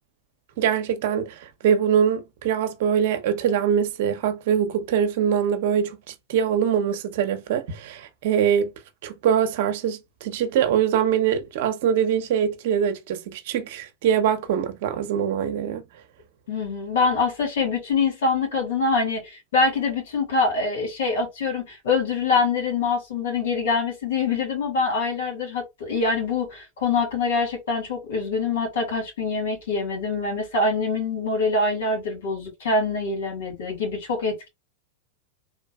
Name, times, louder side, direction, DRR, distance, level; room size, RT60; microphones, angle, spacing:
voice 1, 0.6-8.7 9.0-15.8, right 8 dB, 65° right, 0.8 m, -23 dB
voice 2, 16.5-34.5, left 4 dB, 75° left, 2.3 m, -24 dB
3.6 x 2.5 x 2.3 m
hypercardioid pair, 105°, 0 cm